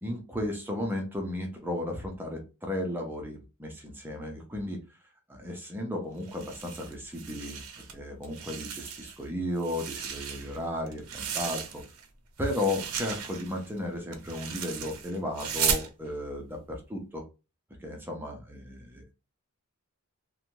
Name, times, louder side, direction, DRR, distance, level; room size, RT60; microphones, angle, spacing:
voice 1, 0.0-4.8 5.3-11.8 12.4-17.2 17.8-19.0, left 1 dB, 10° right, 0.6 m, -34 dB
sound 1, 6.2-7.9 8.2-9.2 9.6-12.1 12.4-15.9, right 7 dB, 70° right, 0.6 m, -35 dB
2.7 x 2.2 x 2.9 m
head